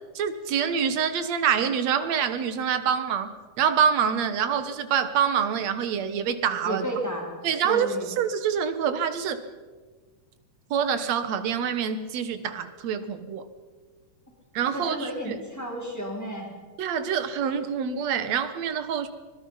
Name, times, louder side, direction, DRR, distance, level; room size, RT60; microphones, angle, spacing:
voice 1, 0.2-3.3 3.6-6.9 7.4-7.9 8.2-9.4 10.7-13.5 14.5-15.4 16.8-19.1, right 7 dB, 65° right, 11 dB, 2.4 m, -26 dB
voice 2, 6.6-7.3 7.6-8.1 14.6-16.5, equal, 5° left, 0 dB, 3.9 m, -32 dB
24.5 x 20.5 x 5.7 m, 1.4 s
omnidirectional pair, 3.6 m